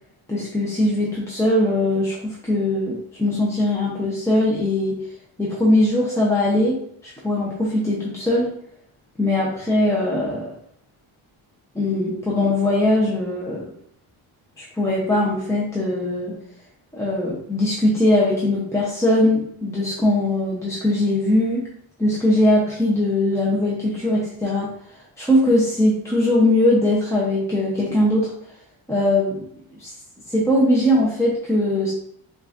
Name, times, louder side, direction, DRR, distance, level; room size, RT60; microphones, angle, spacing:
voice 1, 0.3-5.0 5.4-8.5 9.2-10.5 11.7-13.6 14.6-16.4 16.9-21.7 22.0-24.7 25.2-28.3 28.9-29.4 29.8-29.9 30.3-31.9, left 1 dB, 5° left, -6 dB, 0.7 m, -20 dB
6.1 x 2.6 x 2.5 m, 0.68 s
cardioid pair, 115°, 49 cm